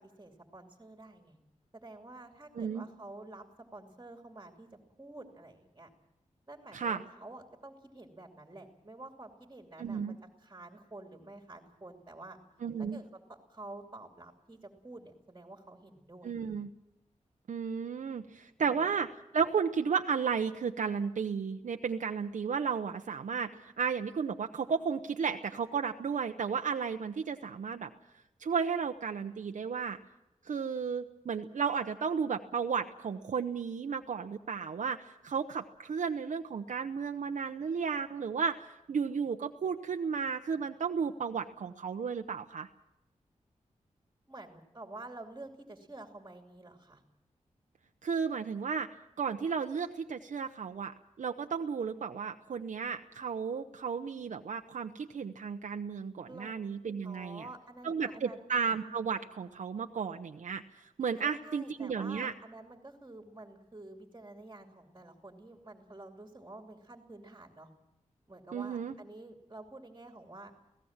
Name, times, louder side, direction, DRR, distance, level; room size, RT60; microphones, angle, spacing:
voice 1, 0.2-1.4 1.7-3.4 3.7-5.9 6.5-12.4 12.8-16.4 18.6-18.8 44.3-47.0 56.3-56.5 57.0-58.5 61.1-67.7 68.3-70.6, right 2 dB, 25° right, 3 dB, 2.7 m, -49 dB
voice 2, 6.7-7.0 9.8-10.1 12.6-13.0 16.2-16.7 17.5-19.1 19.3-27.9 28.4-30.0 30.4-42.7 48.0-48.9 49.2-57.4 57.8-62.3 68.5-68.9, right 6 dB, 75° right, 5 dB, 0.9 m, -33 dB
24.5 x 17.0 x 7.3 m, 0.89 s
wide cardioid pair, 75°, 13 cm